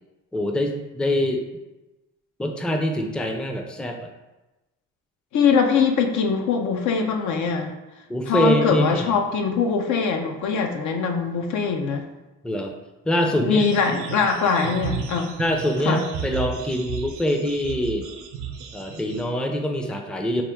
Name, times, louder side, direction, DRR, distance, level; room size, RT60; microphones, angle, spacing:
voice 1, 0.3-1.4 2.4-4.1 8.1-9.2 12.4-12.7 13.1-13.6 15.4-18.1 18.7-20.4, equal, 5° left, 3 dB, 0.4 m, -24 dB
voice 2, 5.3-7.7 8.3-12.0 13.4-15.4 15.9-16.1, left 5 dB, 70° left, 4 dB, 0.6 m, -22 dB
sound 1, 13.6-19.2, right 7 dB, 85° right, 0.7 m, -34 dB
4.3 x 2.4 x 3.5 m, 1.0 s
cardioid pair, 90°, 30 cm